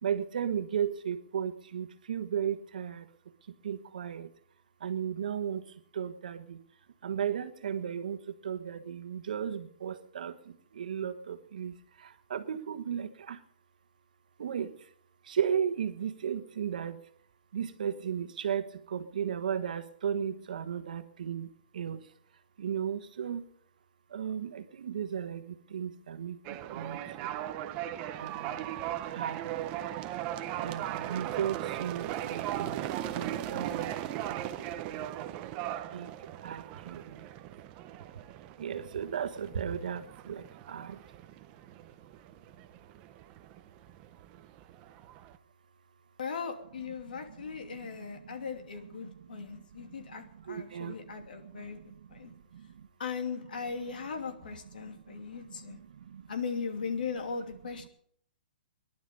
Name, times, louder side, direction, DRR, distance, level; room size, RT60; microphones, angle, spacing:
voice 1, 0.0-3.1 3.4-4.3 4.8-6.6 7.0-13.4 14.4-14.9 15.2-17.0 17.5-22.1 22.6-23.5 24.1-26.4 26.7-27.5 28.2-28.7 29.0-29.7 30.6-34.5 34.8-35.3 35.9-37.3 38.6-41.0 47.0-48.4 48.8-52.9 54.8-56.3 57.8-57.9, right 8 dB, 60° right, 10 dB, 1.4 m, -36 dB
sound 1, 26.4-45.4, right 12 dB, 20° right, 0.6 m, -38 dB
voice 2, 46.2-51.8 52.1-52.3 53.0-55.8 56.3-57.9, left 5 dB, 70° left, 5 dB, 2.8 m, -38 dB
19.5 x 11.5 x 5.4 m, 0.65 s
hypercardioid pair, 170°, 5 cm